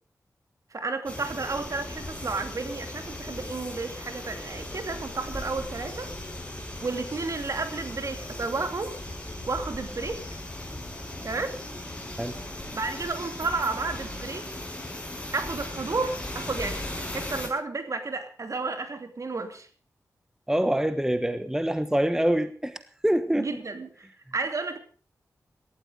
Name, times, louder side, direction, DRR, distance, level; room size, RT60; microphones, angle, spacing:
voice 1, 0.7-6.1 6.8-9.0 9.4-10.2 11.2-11.6 12.7-14.5 15.3-19.7 23.3-23.9 24.3-24.8, right 3 dB, 55° right, 8 dB, 2.8 m, -32 dB
sound 1, 1.1-17.5, left 1 dB, 20° left, 6.4 m, -37 dB
voice 2, 20.5-23.5, right 1 dB, 10° right, 11 dB, 1.3 m, -25 dB
17.5 x 13.0 x 5.1 m, 0.41 s
cardioid pair, 55°, 6 cm